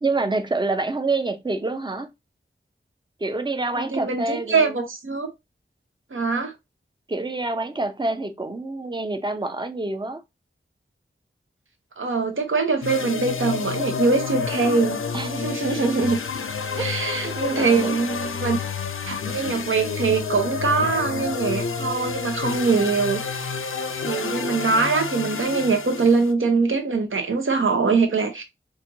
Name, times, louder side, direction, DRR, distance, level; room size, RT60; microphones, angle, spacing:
voice 1, 0.0-2.1 3.2-4.8 7.1-10.2 15.1-15.3 15.7-15.8 16.8-16.9 17.1-18.0, right 2 dB, 20° right, 0.5 m, -27 dB
voice 2, 3.8-5.3 6.1-6.5 12.0-15.0 15.3-16.2 16.8-18.6 19.0-23.5 24.0-28.4, right 4 dB, 75° right, 0.9 m, -23 dB
sound 1, 12.8-26.3, left 5 dB, 85° left, 0.5 m, -29 dB
4.2 x 2.6 x 2.6 m
wide cardioid pair, 65°, 21 cm